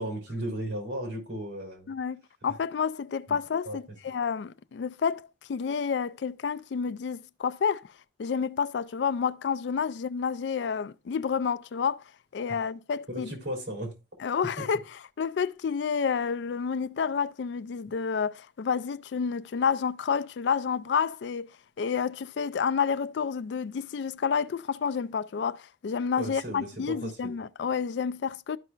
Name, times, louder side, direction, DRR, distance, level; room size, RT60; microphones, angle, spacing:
voice 1, 0.0-1.9 3.7-3.8 13.1-14.0 14.6-14.7 26.2-27.1, right 1 dB, 80° right, 3.3 m, -35 dB
voice 2, 1.9-7.9 8.2-12.0 12.3-13.3 14.2-14.8 15.2-21.5 21.8-28.6, left 6 dB, 70° left, 0.4 m, -29 dB
12.5 x 5.6 x 2.4 m
head